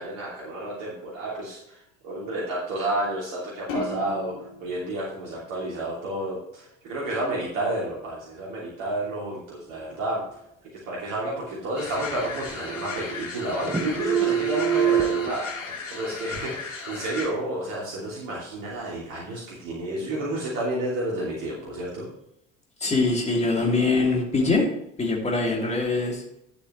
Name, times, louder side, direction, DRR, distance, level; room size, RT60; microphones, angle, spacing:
voice 1, 0.0-10.2 10.7-15.5 15.9-22.1, right 1 dB, 50° right, -5 dB, 2.9 m, -31 dB
sound 1, 3.7-6.2, left 1 dB, 55° left, 3.2 m, -36 dB
sound 2, 11.2-12.2 12.5-13.4 13.7-15.3, right 9 dB, 5° right, 0.9 m, -26 dB
sound 3, 11.8-17.3, left 4 dB, 70° left, 3.6 m, -36 dB
voice 2, 22.8-24.7 25.0-26.4, left 3 dB, 15° left, 0 dB, 2.8 m, -23 dB
11.5 x 8.1 x 3.2 m, 0.79 s
figure-of-eight pair, 65°, 40 cm